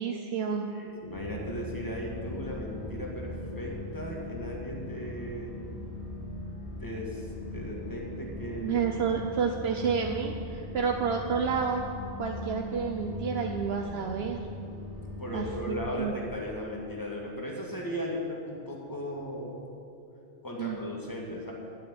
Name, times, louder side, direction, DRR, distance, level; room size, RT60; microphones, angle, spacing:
voice 1, 0.0-0.7 8.6-11.8 12.2-14.4 15.3-16.1 20.6-20.8, right 6 dB, 70° right, 2 dB, 1.0 m, -30 dB
voice 2, 0.7-5.6 6.8-8.8 15.2-19.6 20.4-21.5, equal, 20° left, -2 dB, 2.2 m, -37 dB
sound 1, 1.1-16.0, left 2 dB, 55° left, 3.5 m, -40 dB
9.4 x 9.0 x 9.3 m, 2.6 s
omnidirectional pair, 1.1 m